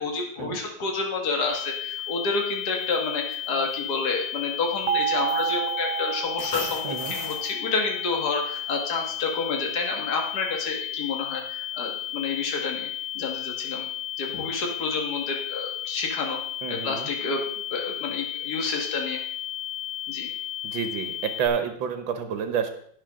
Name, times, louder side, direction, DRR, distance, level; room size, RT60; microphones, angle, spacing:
voice 1, 0.0-12.9 13.2-13.9 14.2-16.4 16.7-19.2 20.1-20.3, left 4 dB, 50° left, 2 dB, 2.3 m, -29 dB
sound 1, 1.5-21.5, left 13 dB, 80° left, 3.0 m, -34 dB
sound 2, 2.8-3.0 3.3-3.8 4.9-5.0 5.3-6.0 6.4-7.5, left 1 dB, 10° left, 1.6 m, -37 dB
sound 3, 4.9-7.8, right 9 dB, 85° right, 1.7 m, -30 dB
voice 2, 16.6-17.1 20.6-22.7, right 7 dB, 70° right, 7 dB, 1.9 m, -29 dB
17.5 x 6.4 x 3.8 m, 0.63 s
omnidirectional pair, 2.3 m